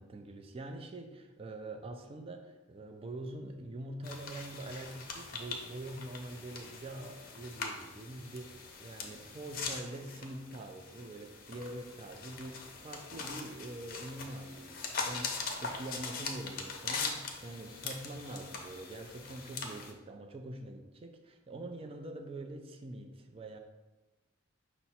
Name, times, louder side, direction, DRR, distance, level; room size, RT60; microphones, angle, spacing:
voice 1, 0.0-23.6, right 1 dB, 30° right, 5 dB, 0.3 m, -44 dB
sound 1, 4.0-19.9, left 4 dB, 50° left, 0.6 m, -42 dB
5.6 x 2.1 x 4.2 m, 1.1 s
head